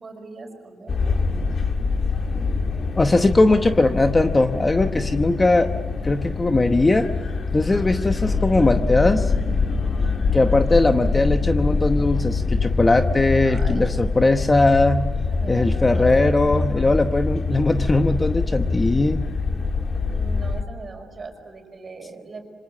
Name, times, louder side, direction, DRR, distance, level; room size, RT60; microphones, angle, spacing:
voice 1, 0.0-1.5 13.4-14.4 15.3-16.9 20.1-22.5, right 3 dB, 35° right, 5 dB, 5.4 m, -40 dB
sound 1, 0.9-20.6, left 4 dB, 40° left, 2.1 m, -24 dB
voice 2, 2.9-5.7 6.0-7.1 7.5-9.3 10.3-15.0 15.5-19.2, left 2 dB, 20° left, 7 dB, 0.9 m, -19 dB
27.0 x 26.0 x 7.6 m, 1.5 s
wide cardioid pair, 145°, 0 cm